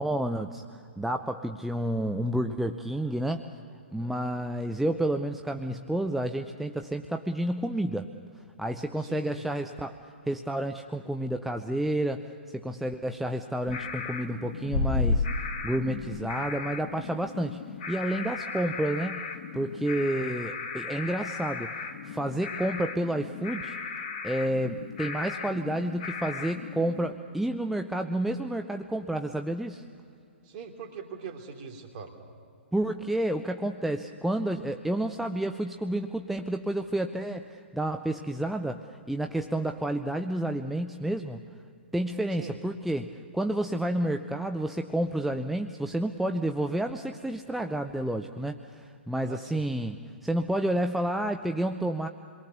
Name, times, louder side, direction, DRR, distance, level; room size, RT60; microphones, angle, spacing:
voice 1, 0.0-3.4 3.9-8.1 8.6-10.0 10.3-12.3 12.5-15.3 15.6-17.6 17.9-19.2 19.5-23.8 24.2-29.8 32.7-41.4 41.9-52.1, right 1 dB, ahead, 6 dB, 0.6 m, -30 dB
voice 2, 9.0-9.4 30.4-32.2 42.4-42.6 49.2-49.6, right 5 dB, 35° right, 2 dB, 3.2 m, -41 dB
sound 1, 13.6-27.1, left 4 dB, 45° left, 2.0 m, -34 dB
28.0 x 22.5 x 6.9 m, 2.4 s
figure-of-eight pair, 120°, 6 cm